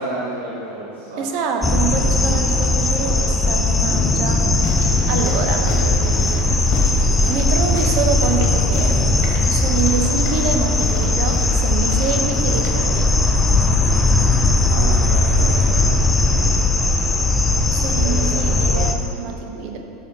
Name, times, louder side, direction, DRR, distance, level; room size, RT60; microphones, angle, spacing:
voice 1, 0.0-1.2 4.9-5.1 5.4-6.2 14.4-16.9 17.9-18.9, right 2 dB, 90° right, -9 dB, 1.8 m, -31 dB
voice 2, 1.2-4.5 5.1-5.7 6.6-13.1 17.7-19.8, right 5 dB, 60° right, 4 dB, 0.9 m, -26 dB
sound 1, 1.6-18.9, left 2 dB, 15° left, 0.7 m, -18 dB
sound 2, 4.6-12.9, left 3 dB, 60° left, 1.5 m, -33 dB
12.5 x 6.3 x 2.9 m, 3.0 s
hypercardioid pair, 90°, 0 cm